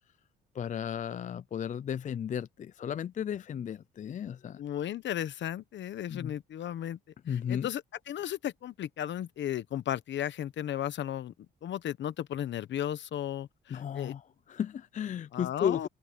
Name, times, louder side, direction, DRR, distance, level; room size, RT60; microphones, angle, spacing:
voice 1, 0.5-4.6 6.1-6.3 7.3-7.7 13.7-15.9, left 8 dB, 40° left, 0.4 m, -34 dB
voice 2, 4.6-7.0 7.3-11.3 11.6-14.1 15.3-15.9, left 11 dB, 65° left, 1.1 m, -35 dB
cardioid pair, 90°, 20 cm